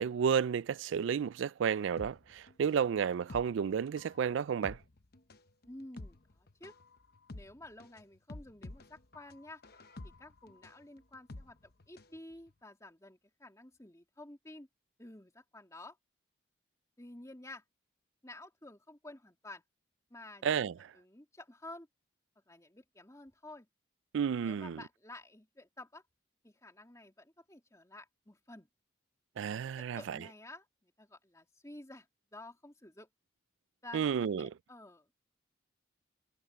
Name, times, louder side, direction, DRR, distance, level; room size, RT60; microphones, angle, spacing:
voice 1, 0.0-4.8 20.4-20.7 24.1-24.8 29.4-30.2 33.9-34.5, right 7 dB, 75° right, 0.3 m, -31 dB
sound 1, 2.0-12.2 12.5-12.6, left 2 dB, 50° left, 0.9 m, -50 dB
voice 2, 5.7-6.8 7.3-9.6 10.0-14.7 15.0-16.0 17.0-17.6 18.2-19.6 20.1-20.5 20.9-21.9 22.5-23.7 24.5-26.0 26.4-28.7 29.8-33.1 33.8-35.1, left 2 dB, 15° left, 2.6 m, -51 dB
head